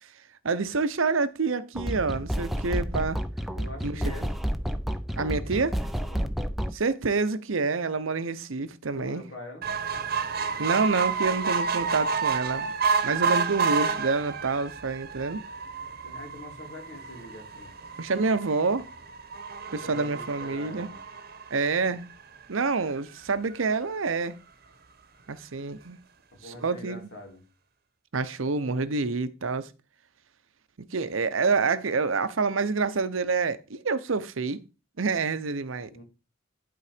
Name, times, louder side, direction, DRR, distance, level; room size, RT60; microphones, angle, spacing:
voice 1, 0.4-3.2 3.8-4.1 5.2-5.8 6.7-9.2 10.6-12.7 13.0-15.4 18.0-18.9 19.7-20.9 21.5-22.1 22.5-24.4 25.3-26.0 26.4-27.1 28.1-29.7 30.8-34.6 35.0-36.0, right 4 dB, 80° right, 0.8 m, -27 dB
sound 1, 1.8-6.8, equal, ahead, 0.5 m, -30 dB
voice 2, 3.5-4.3 6.1-6.3 8.9-9.7 16.0-17.7 19.7-21.0 26.3-27.4 35.9-36.0, left 1 dB, 70° left, 2.9 m, -43 dB
sound 2, 9.6-22.2 22.8-22.9 23.2-23.3 23.5-23.6, right 5 dB, 50° right, 1.0 m, -30 dB
11.5 x 3.9 x 5.0 m
head